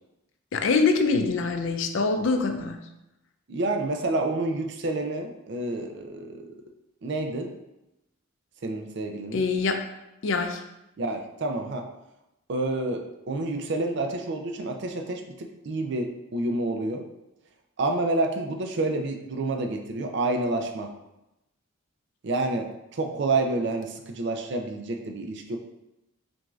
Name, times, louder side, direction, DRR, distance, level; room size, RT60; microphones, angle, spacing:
voice 1, 0.5-2.8 9.3-9.8 10.2-10.6, left 4 dB, 65° left, 6 dB, 0.4 m, -24 dB
voice 2, 3.5-6.5 7.0-7.5 8.6-9.4 11.0-11.9 12.5-17.0 17.8-20.9 22.2-25.6, right 2 dB, 55° right, 3 dB, 0.4 m, -29 dB
6.0 x 2.6 x 2.3 m, 0.92 s
head